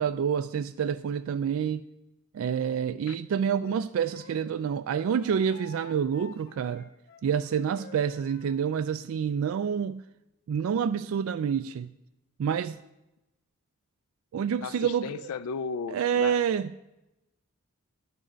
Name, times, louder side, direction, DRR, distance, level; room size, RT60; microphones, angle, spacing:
voice 1, 0.0-1.9 2.3-6.9 7.2-10.0 10.5-11.9 12.4-12.8 14.3-15.1 15.9-16.6, right 7 dB, 75° right, 0.3 m, -28 dB
Wind instrument woodwind instrument, 3.6-8.7, left 4 dB, 50° left, 0.7 m, -51 dB
voice 2, 14.6-16.4, left 5 dB, 90° left, 0.3 m, -35 dB
10.0 x 6.2 x 5.1 m
head